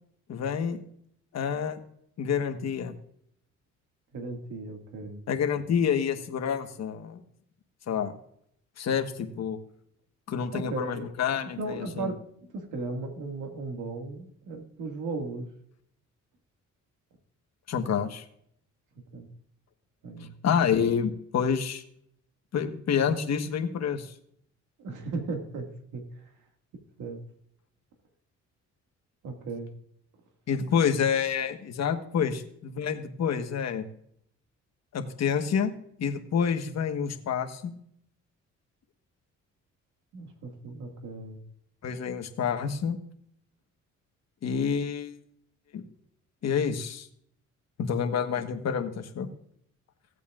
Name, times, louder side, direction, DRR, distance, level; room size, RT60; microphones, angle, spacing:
voice 1, 0.3-0.8 1.3-1.8 2.2-2.9 5.3-7.2 7.9-8.1 8.8-9.6 10.3-12.1 17.7-18.2 20.4-21.8 22.5-24.1 30.5-33.8 34.9-35.7 36.0-37.7 41.8-43.0 44.4-45.2 45.7-45.8 46.4-47.1 47.8-49.3, left 7 dB, 60° left, 6 dB, 1.3 m, -28 dB
voice 2, 4.1-5.2 10.5-11.1 11.6-15.5 19.1-19.3 20.0-20.3 24.8-26.1 27.0-27.2 29.2-29.7 40.1-41.4, right 3 dB, 80° right, 4 dB, 2.0 m, -36 dB
16.0 x 8.3 x 2.5 m, 0.67 s
cardioid pair, 90°, 30 cm